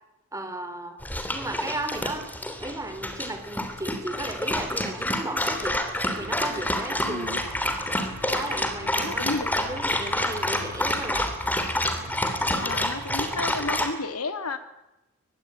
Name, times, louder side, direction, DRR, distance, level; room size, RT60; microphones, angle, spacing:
voice 1, 0.3-1.0 1.3-2.3 2.6-5.8 6.2-7.4 8.2-9.2 9.5-11.3, right 2 dB, 15° right, 7 dB, 3.5 m, -35 dB
Dog, 1.0-13.9, left 1 dB, 10° left, 3.1 m, -28 dB
sound 1, 6.2-13.7, equal, 80° right, 2.1 m, -45 dB
voice 2, 7.1-7.4 9.0-9.5 12.6-14.6, left 3 dB, 85° left, 9 dB, 2.2 m, -32 dB
23.0 x 21.0 x 8.9 m, 0.96 s
head